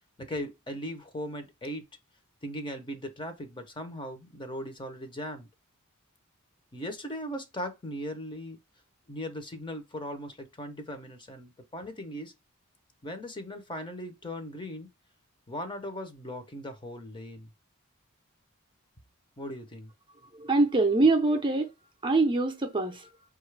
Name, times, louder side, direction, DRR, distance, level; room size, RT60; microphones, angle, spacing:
voice 1, 0.2-1.9 2.4-5.5 6.7-8.6 9.1-12.3 13.0-14.9 15.5-17.5 19.4-19.9, equal, 25° left, 0.7 m, -38 dB
voice 2, 20.4-21.7 22.0-23.1, right 3 dB, 20° right, 0.6 m, -24 dB
5.2 x 2.4 x 3.2 m
head